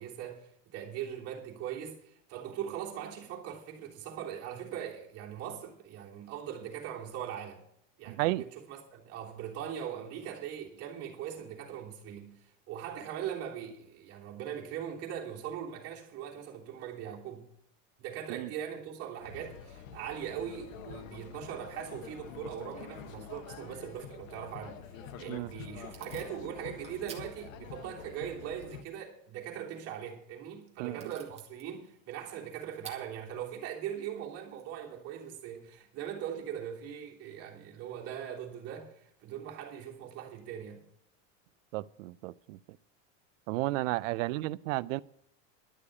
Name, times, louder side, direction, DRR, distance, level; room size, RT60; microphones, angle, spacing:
voice 1, 0.0-7.6 8.0-17.5 18.0-40.8, right 9 dB, 40° right, 3.2 m, -40 dB
voice 2, 8.1-8.4 18.3-18.5 25.3-25.5 30.8-31.1 41.7-42.6 43.5-45.0, right 19 dB, 75° right, 0.6 m, -33 dB
sound 1, 19.2-28.8, left 8 dB, 85° left, 1.3 m, -47 dB
Packing tape duct tape / Tearing, 25.0-35.8, right 6 dB, 15° right, 2.2 m, -57 dB
12.0 x 6.7 x 8.5 m
supercardioid pair, 155°, 39 cm